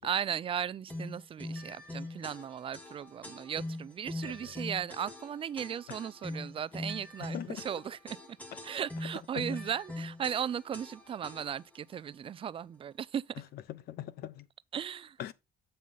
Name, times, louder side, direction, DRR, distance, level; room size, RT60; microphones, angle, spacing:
voice 1, 0.0-8.4 8.6-13.4 14.7-15.2, right 8 dB, 35° right, 0.4 m, -36 dB
sound 1, 0.9-11.8, left 2 dB, 10° left, 1.6 m, -42 dB
voice 2, 7.2-7.7 9.3-9.5 13.5-14.5 15.2-15.3, left 12 dB, 70° left, 0.7 m, -41 dB
7.4 x 5.6 x 3.9 m
cardioid pair, 110°, 17 cm